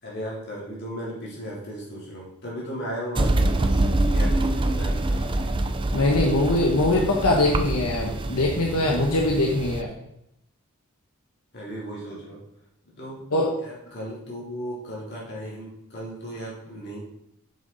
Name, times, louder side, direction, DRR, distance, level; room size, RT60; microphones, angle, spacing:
voice 1, 0.0-3.8 4.1-5.4 5.9-6.0 11.5-12.4 12.9-13.2 13.6-17.0, equal, 50° left, -5 dB, 3.3 m, -36 dB
sound 1, 3.1-9.8, right 2 dB, 20° right, 0.4 m, -25 dB
voice 2, 5.9-9.9 13.3-13.5, left 2 dB, 85° left, -1 dB, 1.2 m, -22 dB
7.6 x 7.3 x 4.1 m, 0.81 s
head